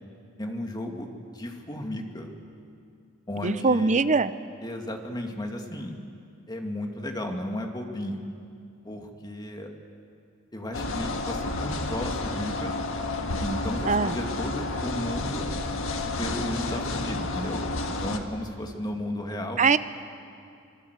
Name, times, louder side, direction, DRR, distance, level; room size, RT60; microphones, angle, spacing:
voice 1, 0.4-2.3 3.3-4.0 4.6-6.0 6.5-8.3 8.8-9.7 10.5-12.7 13.4-15.5 16.2-17.6 17.9-19.6, left 1 dB, 20° left, 3 dB, 2.1 m, -34 dB
voice 2, 3.4-4.3 13.8-14.2 19.6-19.8, right 4 dB, 35° right, 14 dB, 0.7 m, -22 dB
sound 1, 10.7-18.2, left 2 dB, 65° left, 1.7 m, -31 dB
26.0 x 21.5 x 8.1 m, 2.5 s
head